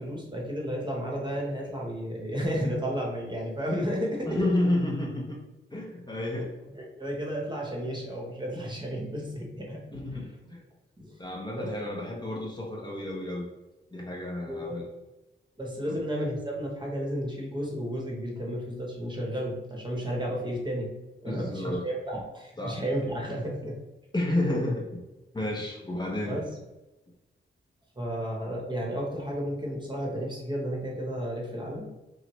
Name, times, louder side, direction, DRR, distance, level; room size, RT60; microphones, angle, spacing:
voice 1, 0.0-4.5 6.4-6.5 6.7-10.0 11.0-11.2 11.5-11.7 14.4-14.9 15.6-21.0 21.2-23.8 26.3-26.5 28.0-31.9, equal, 20° right, -2 dB, 0.9 m, -32 dB
voice 2, 4.3-5.4 5.7-6.5 9.9-10.6 11.2-13.4 13.9-14.9 15.9-16.0 21.3-21.8 22.6-22.8 24.1-25.0 25.3-26.4, left 1 dB, 20° left, -3 dB, 0.6 m, -31 dB
6.0 x 2.1 x 3.0 m, 1.0 s
wide cardioid pair, 170°, 21 cm